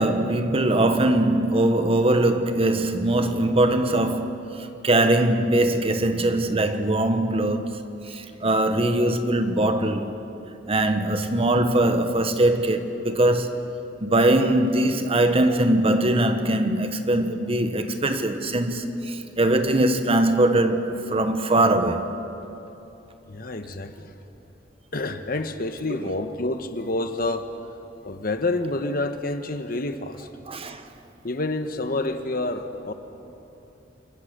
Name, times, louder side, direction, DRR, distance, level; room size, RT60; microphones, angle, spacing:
voice 1, 0.0-4.4 4.8-7.7 8.1-10.1 10.7-13.7 14.0-22.1 30.5-30.8, right 1 dB, 35° right, 1.3 m, -21 dB
voice 2, 23.3-24.1 24.9-27.5 28.0-30.3 31.2-32.9, left 2 dB, 55° left, 1.3 m, -28 dB
29.0 x 23.0 x 6.8 m
head